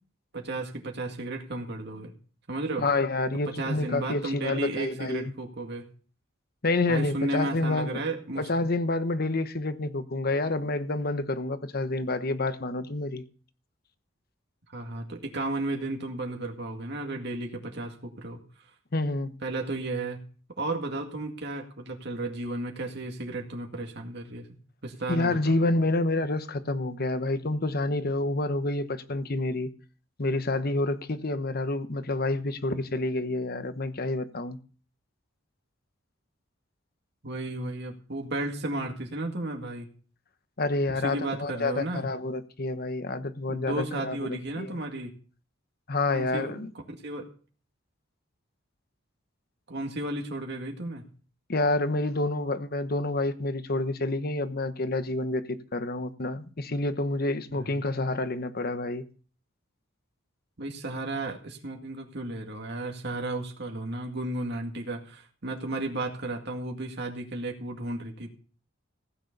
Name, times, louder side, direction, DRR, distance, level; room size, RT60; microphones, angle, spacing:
voice 1, 0.3-2.1 2.5-2.8 3.6-5.8 6.9-8.5 14.7-18.4 19.4-20.2 20.6-24.5 24.8-25.5 37.2-39.9 40.9-42.1 43.5-45.1 46.1-46.6 47.0-47.3 49.7-51.0 57.5-57.8 60.6-68.3, right 2 dB, 55° right, 2.1 m, -34 dB
voice 2, 2.8-5.3 6.6-8.0 8.4-13.3 18.9-19.3 25.1-29.7 30.2-34.6 40.6-44.8 45.9-46.7 51.5-59.0, left 2 dB, 50° left, 1.1 m, -28 dB
15.5 x 9.4 x 5.3 m
head